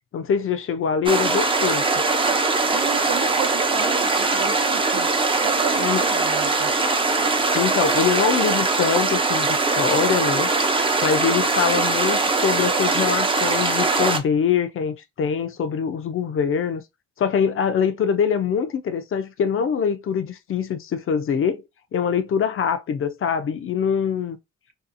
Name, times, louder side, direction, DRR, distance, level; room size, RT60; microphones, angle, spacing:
voice 1, 0.1-1.8 5.8-6.0 7.5-10.5 11.0-16.8 17.2-21.6 21.9-24.4, left 7 dB, 45° left, 0.5 m, -23 dB
sound 1, 1.1-14.2, right 3 dB, 20° right, 0.4 m, -21 dB
voice 2, 2.7-5.1 5.4-6.7, right 10 dB, 75° right, 0.7 m, -33 dB
2.7 x 2.3 x 2.5 m
cardioid pair, 90°, 30 cm